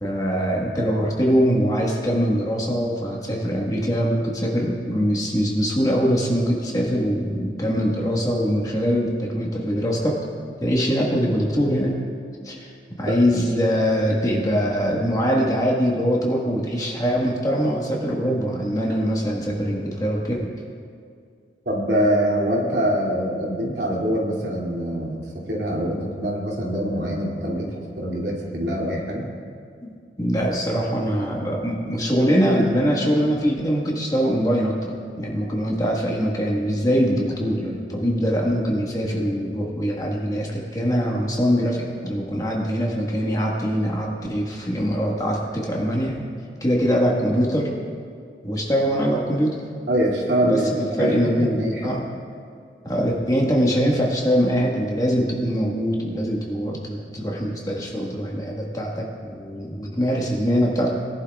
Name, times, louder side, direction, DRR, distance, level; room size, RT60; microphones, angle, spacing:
voice 1, 0.0-10.2 10.6-12.0 12.4-12.7 13.0-20.5 29.8-34.9 35.2-46.2 46.6-47.7 48.4-49.5 50.4-52.0 52.8-60.9, equal, 20° left, -2 dB, 1.5 m, -23 dB
voice 2, 21.7-25.2 25.5-29.2 49.9-51.9, equal, 70° right, -4 dB, 2.7 m, -24 dB
20.5 x 11.0 x 2.4 m, 2.3 s
head